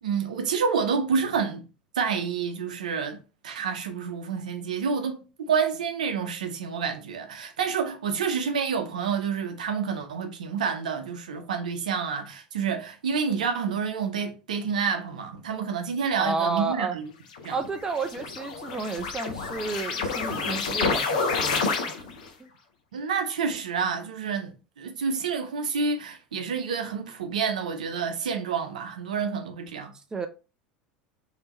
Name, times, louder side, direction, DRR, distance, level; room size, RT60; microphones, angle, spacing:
voice 1, 0.0-1.6 2.0-3.2 3.4-17.1 17.4-17.6 22.9-29.9, right 6 dB, 65° right, 0.7 m, -28 dB
voice 2, 16.2-17.0 17.5-22.0 22.4-22.5 30.1-30.3, right 4 dB, 15° right, 0.5 m, -31 dB
sound 1, 17.3-22.3, left 4 dB, 60° left, 0.7 m, -29 dB
3.4 x 2.8 x 4.1 m
figure-of-eight pair, 75°, 4 cm